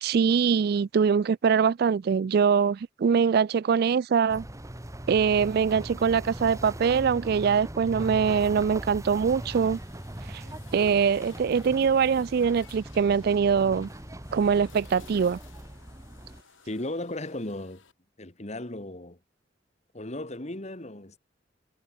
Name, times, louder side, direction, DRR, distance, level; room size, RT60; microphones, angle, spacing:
voice 1, 0.0-4.4 5.1-9.8 10.3-10.4 10.7-13.9 14.3-15.4, right 6 dB, 55° right, 0.3 m, -23 dB
sound 1, 4.3-16.4, right 1 dB, 15° right, 1.4 m, -40 dB
sound 2, 9.3-17.9, left 6 dB, 90° left, 2.6 m, -56 dB
voice 2, 16.7-17.8 18.2-19.2 19.9-21.2, left 1 dB, 35° left, 1.9 m, -36 dB
head